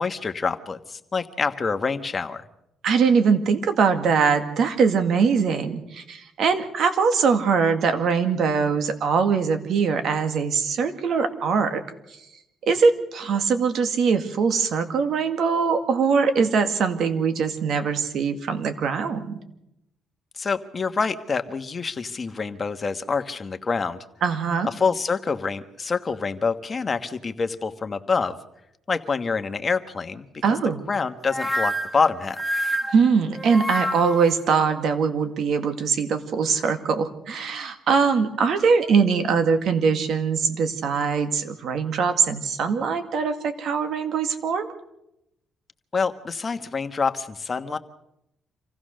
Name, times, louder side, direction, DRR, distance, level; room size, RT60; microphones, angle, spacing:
voice 1, 0.0-2.4 20.4-24.0 24.6-28.4 28.9-30.4 30.9-32.4 45.9-47.8, left 5 dB, 35° left, 8 dB, 1.4 m, -26 dB
voice 2, 2.8-11.8 12.7-19.4 24.2-24.7 30.4-30.8 32.9-44.7, right 5 dB, 65° right, 8 dB, 2.1 m, -22 dB
sound 1, 31.3-34.4, equal, 5° left, 1.1 m, -28 dB
26.5 x 16.0 x 6.5 m, 0.85 s
cardioid pair, 90°, 0 cm